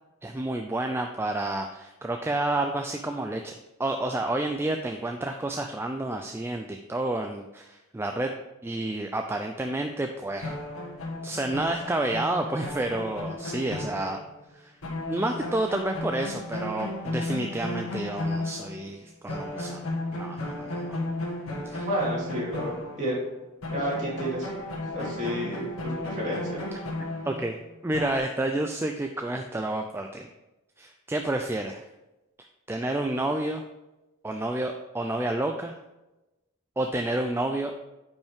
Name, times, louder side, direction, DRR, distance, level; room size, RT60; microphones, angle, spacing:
voice 1, 0.2-3.5 3.8-8.3 8.6-10.6 11.2-14.2 14.5-14.8 15.0-19.8 20.1-21.0 21.6-21.9 26.7-26.8 27.2-27.6 27.8-30.3 30.8-31.9 32.7-33.6 34.2-35.8 36.8-37.7, right 2 dB, 10° right, 4 dB, 0.3 m, -30 dB
sound 1, 10.4-14.5 14.8-18.9 19.3-23.4 23.6-28.2, left 2 dB, 75° left, 1.5 m, -34 dB
voice 2, 21.4-23.2 23.7-26.6, equal, 35° right, -6 dB, 2.9 m, -31 dB
9.2 x 5.3 x 3.5 m, 1.0 s
head